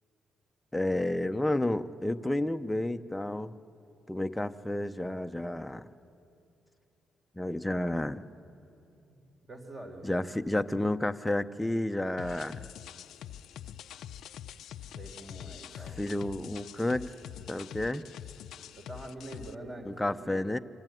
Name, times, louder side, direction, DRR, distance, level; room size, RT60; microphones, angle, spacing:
voice 1, 0.7-3.5 4.1-5.9 7.4-8.3 10.0-12.7 16.0-17.1 17.5-18.0 19.9-20.6, left 1 dB, 10° left, 8 dB, 0.8 m, -31 dB
voice 2, 9.4-10.3 14.9-16.0 18.8-20.5, right 1 dB, 35° right, 2 dB, 3.9 m, -45 dB
sound 1, 12.2-19.5, left 10 dB, 80° left, 0.6 m, -45 dB
26.0 x 24.5 x 9.2 m, 2.6 s
cardioid pair, 105°, 0 cm